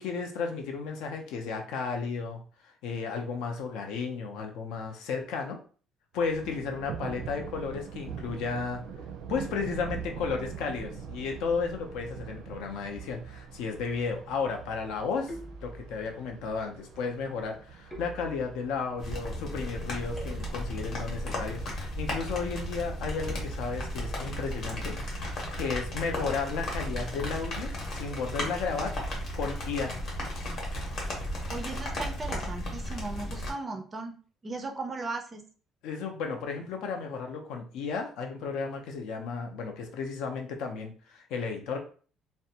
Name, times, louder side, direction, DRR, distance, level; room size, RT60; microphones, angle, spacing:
voice 1, 0.0-2.4 2.8-5.6 6.1-8.8 9.3-15.3 15.6-25.3 25.6-28.9 29.3-30.0 35.8-41.8, left 5 dB, 75° left, 3 dB, 0.6 m, -33 dB
Thunder, 6.2-22.1, right 7 dB, 85° right, 0.4 m, -43 dB
sound 1, 12.9-13.4 15.3-16.2 17.9-18.8 20.2-20.9, right 2 dB, 5° left, 0.7 m, -46 dB
sound 2, 19.0-33.5, equal, 45° left, 0.8 m, -35 dB
voice 2, 31.5-34.1 34.4-35.4, right 3 dB, 20° right, 4 dB, 0.4 m, -37 dB
2.5 x 2.1 x 2.7 m, 0.40 s
cardioid pair, 165°, 0 cm